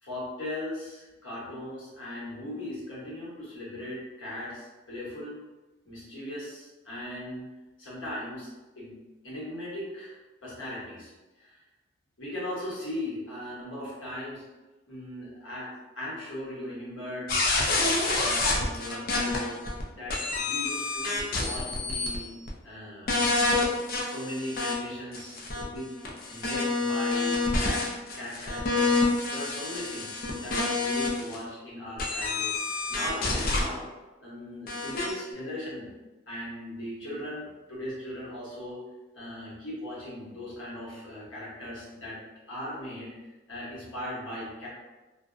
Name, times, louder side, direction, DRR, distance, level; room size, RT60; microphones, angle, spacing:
voice 1, 0.0-5.4 5.8-7.5 7.8-8.5 8.8-8.9 9.2-11.1 11.4-11.6 12.2-14.4 14.9-17.3 18.2-19.6 19.9-22.3 22.6-23.4 24.0-25.9 26.3-27.8 28.1-28.9 29.3-32.5 32.9-33.9 34.2-35.9 36.3-38.8 39.1-42.2 42.5-43.1 43.5-44.7, left 1 dB, 85° left, -7 dB, 1.1 m, -38 dB
sound 1, 17.3-19.8 20.1-22.2 22.5-22.6 23.1-24.7 25.1-31.3 32.0-33.6 34.7-35.1, left 3 dB, 45° left, 0.4 m, -28 dB
2.5 x 2.0 x 2.5 m, 1.1 s
head